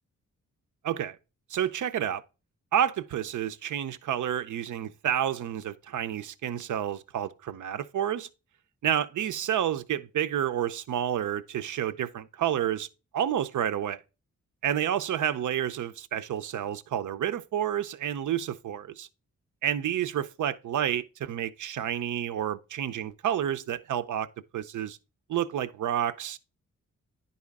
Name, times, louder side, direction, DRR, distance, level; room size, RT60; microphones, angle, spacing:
voice 1, 0.8-1.2 1.5-2.2 2.7-8.3 8.8-12.9 13.1-14.0 14.6-19.1 19.6-24.3 24.5-25.0 25.3-26.4, right 10 dB, 90° right, 0.6 m, -29 dB
10.5 x 4.3 x 3.5 m
wide cardioid pair, 120°, 29 cm